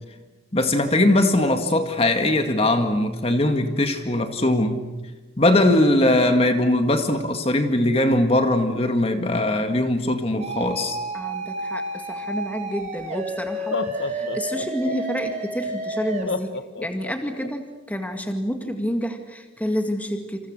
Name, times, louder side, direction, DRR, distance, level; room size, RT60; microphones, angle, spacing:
voice 1, 0.5-4.9 5.4-11.0, left 1 dB, 30° left, 6 dB, 2.0 m, -20 dB
sound 1, 10.4-16.2, right 2 dB, 35° right, 3.4 m, -31 dB
voice 2, 11.1-20.5, equal, 10° left, 5 dB, 2.0 m, -29 dB
Laughter, 12.8-12.9 13.5-15.3 16.3-17.5, left 3 dB, 70° left, 1.6 m, -30 dB
28.0 x 28.0 x 6.6 m, 1.1 s
head